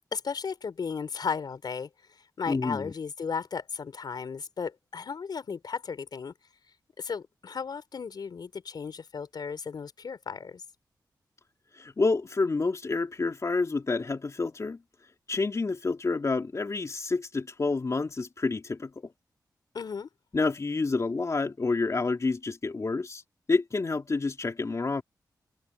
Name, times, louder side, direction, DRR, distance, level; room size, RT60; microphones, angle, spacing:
voice 1, 0.1-1.9 2.4-6.3 7.0-10.6 19.7-20.1, left 5 dB, 70° left, 4.5 m, -35 dB
voice 2, 2.5-2.9 11.7-14.8 15.3-19.1 20.3-23.2 23.5-25.0, left 3 dB, 45° left, 3.2 m, -28 dB
cardioid pair, 70°, 7 cm